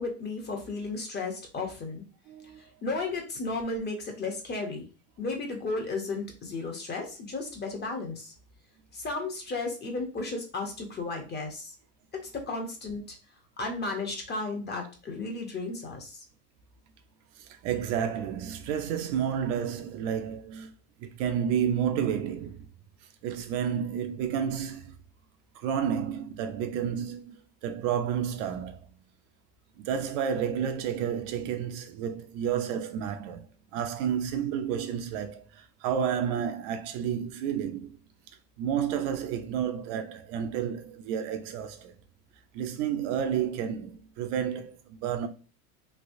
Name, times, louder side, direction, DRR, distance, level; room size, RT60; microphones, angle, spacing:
voice 1, 0.0-2.0 2.6-4.8 5.2-8.3 8.9-11.7 12.1-13.2 13.6-16.2, left 3 dB, 25° left, 0.9 m, -34 dB
voice 2, 2.3-2.6 17.4-20.7 21.0-22.7 23.2-24.9 25.5-28.9 29.8-33.5 33.7-38.0 38.6-41.9 42.5-45.3, right 8 dB, 55° right, 0.6 m, -31 dB
3.3 x 2.8 x 2.6 m
supercardioid pair, 115°, 44 cm